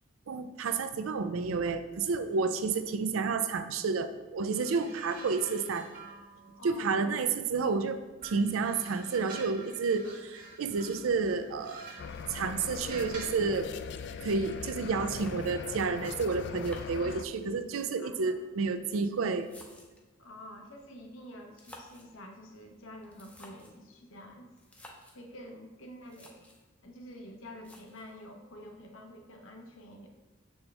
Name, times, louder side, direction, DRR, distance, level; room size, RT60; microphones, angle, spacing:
voice 1, 0.3-5.9 6.6-11.9 12.3-13.7 14.2-19.5, right 4 dB, 85° right, 10 dB, 0.4 m, -30 dB
sound 1, 4.5-7.7 8.2-13.5 14.4-14.7, right 3 dB, 40° right, 1.5 m, -49 dB
voice 2, 6.6-7.0 17.0-17.2 18.0-18.4 20.2-24.5 25.1-26.4 26.8-30.1, equal, 75° left, 3 dB, 0.8 m, -48 dB
sound 2, 12.0-17.2, left 6 dB, 55° left, 0.3 m, -40 dB
sound 3, 15.1-15.8 16.6-17.5 18.4-20.1 21.4-22.2 23.0-23.8 24.6-25.2 25.7-25.8 26.0-26.7 27.6-28.2, left 1 dB, 5° left, 0.6 m, -54 dB
6.8 x 4.3 x 3.3 m, 1.2 s
head